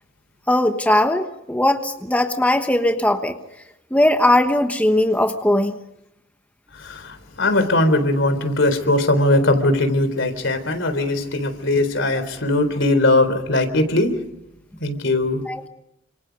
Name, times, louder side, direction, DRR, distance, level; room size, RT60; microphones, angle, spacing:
voice 1, 0.5-3.4 3.9-5.7 15.5-15.7, left 1 dB, 10° left, 6 dB, 1.2 m, -19 dB
voice 2, 6.7-14.1 14.8-15.4, left 2 dB, 70° left, 10 dB, 3.9 m, -20 dB
29.5 x 26.5 x 5.3 m, 0.84 s
head